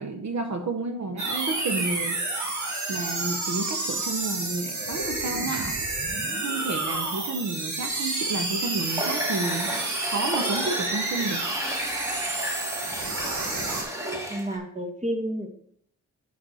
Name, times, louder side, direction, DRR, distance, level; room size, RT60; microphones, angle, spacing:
voice 1, 0.0-2.6 2.9-5.8 6.4-11.4, right 3 dB, 70° right, 5 dB, 1.0 m, -31 dB
sound 1, 1.2-13.8, right 2 dB, 90° right, 2.0 m, -30 dB
Water tap faucet, 8.8-14.6, equal, 10° right, 1.7 m, -33 dB
voice 2, 14.3-15.5, equal, 25° right, 5 dB, 1.5 m, -30 dB
6.5 x 5.3 x 6.2 m, 0.66 s
cardioid pair, 60°, 29 cm